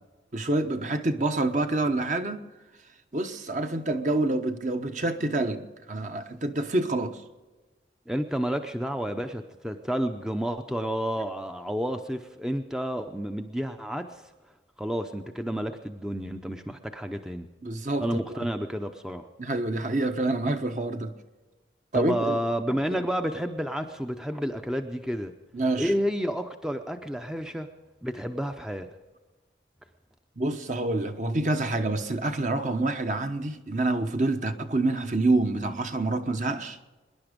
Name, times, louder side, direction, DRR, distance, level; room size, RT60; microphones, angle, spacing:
voice 1, 0.3-2.4 3.1-7.2 17.6-18.5 19.4-21.1 21.9-22.4 25.5-25.9 30.4-36.8, right 2 dB, 45° right, 7 dB, 1.1 m, -27 dB
voice 2, 8.1-14.3 14.8-17.5 18.0-19.3 21.9-25.3 25.8-27.7 28.0-28.9, equal, 5° right, 6 dB, 0.6 m, -30 dB
24.0 x 11.0 x 5.2 m, 1.2 s
head